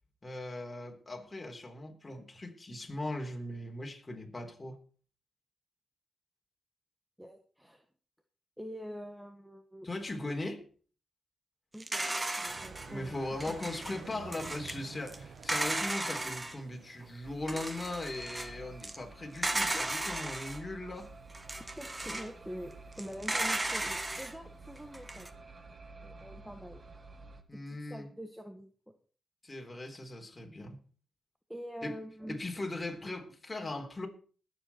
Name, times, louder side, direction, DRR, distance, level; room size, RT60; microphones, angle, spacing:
voice 1, 0.2-4.8 9.8-10.7 12.9-21.1 27.5-28.1 29.4-30.8 31.8-31.9 32.3-34.1, left 2 dB, 25° left, 3.6 m, -39 dB
voice 2, 7.2-7.8 8.6-9.9 11.7-13.6 21.6-25.3 26.0-26.8 27.5-27.6 27.9-28.9 31.5-32.4, equal, ahead, 1.4 m, -45 dB
sound 1, 11.8-12.9 13.4-14.8 15.1-15.2 15.4-16.6 17.0-17.1 17.5-18.5 18.8-19.0 19.3-20.6 21.3-22.3 22.9-24.3 24.8-25.3, right 2 dB, 20° right, 1.3 m, -35 dB
sound 2, 12.5-18.1, right 6 dB, 70° right, 1.3 m, -50 dB
sound 3, 17.2-27.4, right 3 dB, 40° right, 1.7 m, -51 dB
20.0 x 7.8 x 4.4 m
cardioid pair, 70°, 0 cm